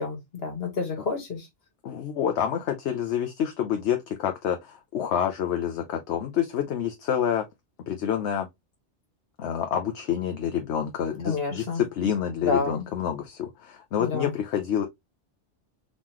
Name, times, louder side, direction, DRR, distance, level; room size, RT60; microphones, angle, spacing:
voice 1, 0.0-1.5 11.2-11.8 12.4-12.8 14.0-14.3, left 4 dB, 55° left, 1.7 m, -29 dB
voice 2, 1.8-7.4 7.9-8.5 9.4-14.8, left 9 dB, 70° left, 1.0 m, -28 dB
3.8 x 3.7 x 2.9 m
omnidirectional pair, 1.2 m